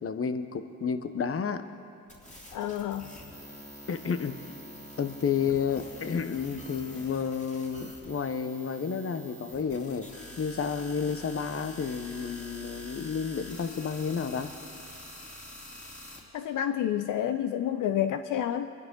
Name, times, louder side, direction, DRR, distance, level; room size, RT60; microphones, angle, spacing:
voice 1, 0.0-1.6 3.9-4.3 5.0-10.1 10.4-14.5, left 6 dB, 45° left, 10 dB, 1.0 m, -31 dB
sound 1, 2.1-16.2, left 1 dB, 20° left, 2.9 m, -46 dB
voice 2, 2.5-3.1 16.3-18.7, left 10 dB, 75° left, 9 dB, 0.6 m, -29 dB
23.5 x 11.0 x 3.8 m, 2.6 s
cardioid pair, 65°, 32 cm